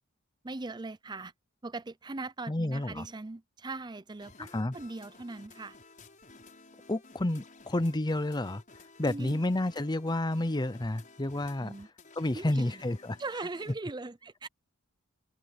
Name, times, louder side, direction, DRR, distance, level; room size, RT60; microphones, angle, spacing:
voice 1, 0.4-1.3 1.6-5.8 9.0-9.4 11.6-11.9 12.3-12.8 13.2-14.5, right 3 dB, 20° right, 0.5 m, -40 dB
voice 2, 2.5-3.1 4.4-4.8 6.9-8.6 9.0-11.7 12.2-13.2, left 1 dB, 20° left, 0.7 m, -30 dB
sound 1, 4.2-13.7, left 3 dB, 35° left, 6.3 m, -55 dB
head